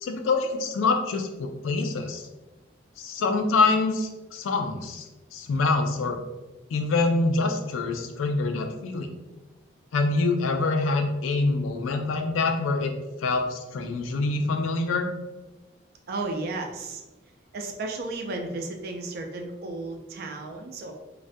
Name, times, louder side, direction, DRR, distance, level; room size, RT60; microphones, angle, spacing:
voice 1, 0.0-2.2 3.0-5.0 5.3-6.2 6.7-9.1 9.9-12.9 13.2-15.1, left 3 dB, 85° left, 5 dB, 0.4 m, -25 dB
voice 2, 16.1-17.0 17.5-20.9, right 2 dB, 50° right, 3 dB, 0.3 m, -33 dB
2.4 x 2.1 x 2.5 m, 1.1 s
head